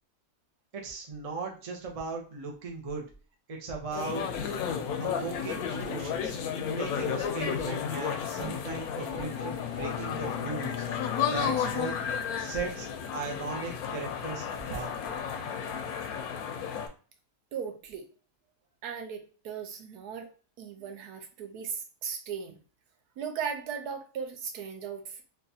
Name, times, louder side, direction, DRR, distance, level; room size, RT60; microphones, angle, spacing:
voice 1, 0.7-3.0 3.5-4.2 5.0-6.4 6.7-10.9 11.3-11.9 12.4-12.9 13.1-14.4 14.7-15.0, right 4 dB, 50° right, 1 dB, 0.4 m, -37 dB
sound 1, 3.9-16.9, left 7 dB, 70° left, 1.0 m, -33 dB
Bowed string instrument, 9.1-12.9, left 10 dB, 90° left, 1.2 m, -40 dB
voice 2, 17.5-18.1 18.8-20.3 20.6-22.6 23.2-25.2, right 7 dB, 75° right, 6 dB, 1.2 m, -37 dB
4.0 x 2.4 x 2.7 m, 0.38 s
omnidirectional pair, 1.7 m